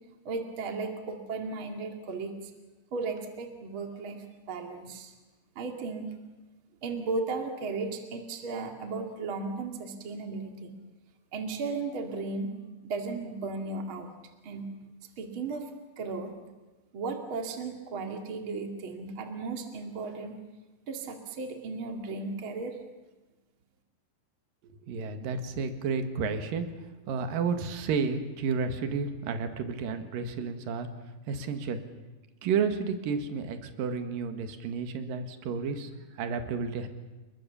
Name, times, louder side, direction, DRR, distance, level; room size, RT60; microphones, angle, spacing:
voice 1, 0.2-2.5 2.9-5.1 5.6-6.1 6.8-10.7 11.3-12.5 12.8-14.1 14.4-14.7 15.2-15.7 16.0-16.3 16.9-20.3 20.9-22.8, right 3 dB, 40° right, 4 dB, 2.9 m, -35 dB
voice 2, 24.6-26.7 27.1-30.9 31.3-31.8 32.4-36.9, right 5 dB, 75° right, 7 dB, 3.4 m, -31 dB
30.0 x 21.5 x 7.1 m, 1.2 s
omnidirectional pair, 4.1 m